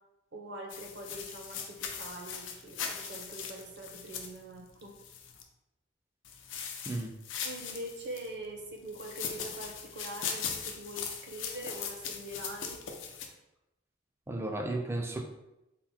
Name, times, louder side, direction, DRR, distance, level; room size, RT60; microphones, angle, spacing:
voice 1, 0.3-4.9 7.4-12.8, right 1 dB, 60° right, 1 dB, 0.7 m, -43 dB
sound 1, 0.7-5.4 6.2-8.3 8.9-13.3, left 7 dB, 75° left, 0.5 m, -40 dB
voice 2, 14.3-15.2, right 2 dB, 15° right, 3 dB, 0.3 m, -34 dB
4.2 x 2.1 x 4.1 m, 0.93 s
head